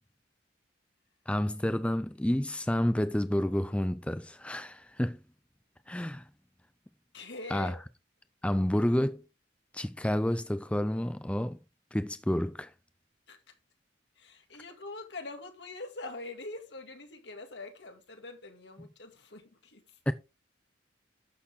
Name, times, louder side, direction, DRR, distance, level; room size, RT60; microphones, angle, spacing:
voice 1, 1.3-5.2 5.9-6.3 7.5-7.8 8.4-9.2 9.7-11.6 11.9-12.7 18.8-18.9 20.1-20.2, left 1 dB, 5° left, 0.4 m, -29 dB
voice 2, 7.1-7.8 13.3-13.4 14.2-19.8, left 2 dB, 70° left, 2.1 m, -44 dB
11.5 x 6.6 x 3.6 m
head